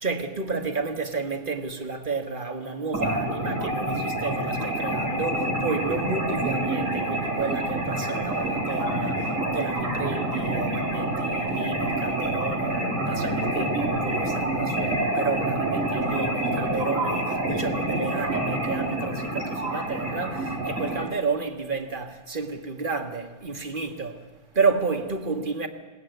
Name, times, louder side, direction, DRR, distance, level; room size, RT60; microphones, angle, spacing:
voice 1, 0.0-24.2 24.5-25.7, right 4 dB, 40° right, 1.9 m, -31 dB
sound 1, 2.9-21.0, right 1 dB, 70° right, 4.0 m, -27 dB
20.5 x 18.0 x 9.4 m
omnidirectional pair, 1.4 m